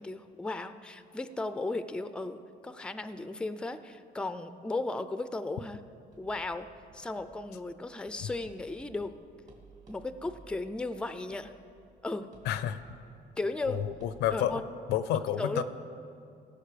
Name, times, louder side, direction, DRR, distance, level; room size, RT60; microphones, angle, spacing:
voice 1, 0.0-5.8 6.2-6.7 6.9-9.1 9.9-11.5 12.0-12.3 13.4-13.8 14.3-14.6 15.4-15.6, left 2 dB, 5° left, 11 dB, 0.4 m, -35 dB
sound 1, 6.1-14.4, right 3 dB, 45° right, 2.4 m, -57 dB
voice 2, 12.4-12.8 13.7-14.6 14.9-15.6, left 10 dB, 80° left, 13 dB, 0.6 m, -30 dB
17.0 x 6.6 x 5.0 m, 2.4 s
cardioid pair, 110°, 17 cm